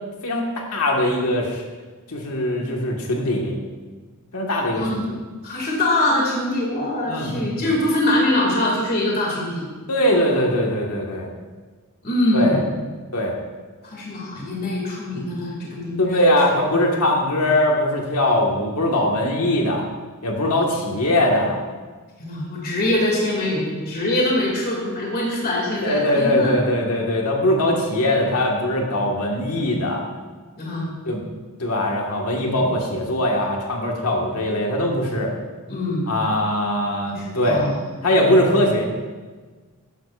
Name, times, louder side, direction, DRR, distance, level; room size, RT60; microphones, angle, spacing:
voice 1, 0.2-1.6 2.1-3.6 4.3-5.2 7.1-7.7 9.9-11.3 12.3-12.6 13.1-13.3 16.0-19.9 20.2-21.6 25.8-30.0 31.0-31.2 31.6-35.3 36.1-37.7 38.0-38.9, left 1 dB, 85° left, -1 dB, 1.7 m, -21 dB
voice 2, 5.4-9.7 12.0-12.7 13.8-16.3 22.2-26.5 30.6-30.9 35.7-36.1 37.1-37.8, left 1 dB, 45° left, -3 dB, 2.3 m, -23 dB
13.5 x 10.0 x 2.5 m, 1.4 s
head